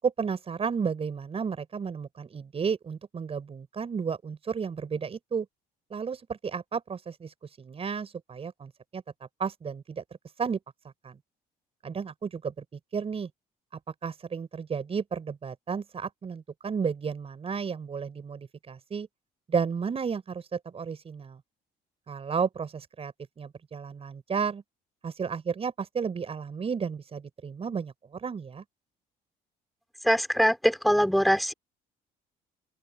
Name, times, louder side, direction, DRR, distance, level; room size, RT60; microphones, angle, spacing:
voice 1, 0.0-5.5 5.9-9.0 9.4-10.0 10.4-10.6 11.0-11.2 11.8-12.6 12.9-13.3 13.9-19.1 19.5-21.4 22.1-24.6 25.0-28.6, right 6 dB, 35° right, 7.1 m, -32 dB
voice 2, 30.1-31.5, equal, ahead, 4.7 m, -22 dB
open air
cardioid pair, 110°, 17 cm